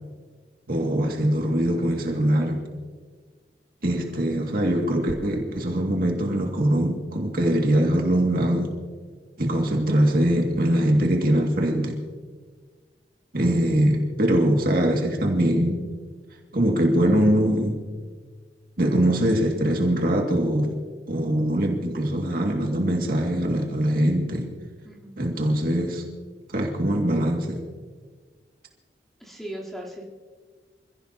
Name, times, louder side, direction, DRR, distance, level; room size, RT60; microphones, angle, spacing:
voice 1, 0.7-2.7 3.8-8.7 9.4-12.0 13.3-15.8 16.5-17.8 18.8-20.8 21.1-24.5 25.2-26.0 26.5-27.6, right 1 dB, 55° right, 0 dB, 2.3 m, -22 dB
voice 2, 24.8-25.2 29.2-30.0, right 1 dB, ahead, -4 dB, 3.6 m, -38 dB
27.0 x 16.5 x 2.9 m, 1.5 s
head